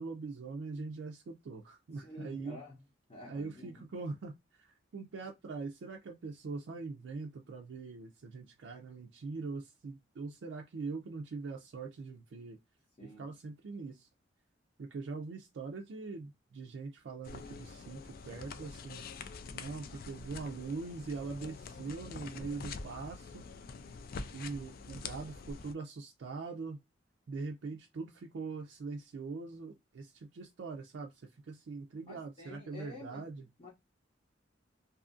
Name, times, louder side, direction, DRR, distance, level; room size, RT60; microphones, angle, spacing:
voice 1, 0.0-2.6 3.3-12.6 13.0-14.1 14.8-19.0 19.5-23.4 24.3-26.8 27.3-33.5, right 4 dB, 65° right, 0.4 m, -42 dB
voice 2, 1.9-2.8 3.1-3.8 13.0-13.3 32.0-33.3 33.6-33.7, left 1 dB, 35° left, 0.7 m, -49 dB
sound 1, 17.2-25.7, left 4 dB, 50° left, 0.3 m, -46 dB
2.6 x 2.4 x 2.4 m
head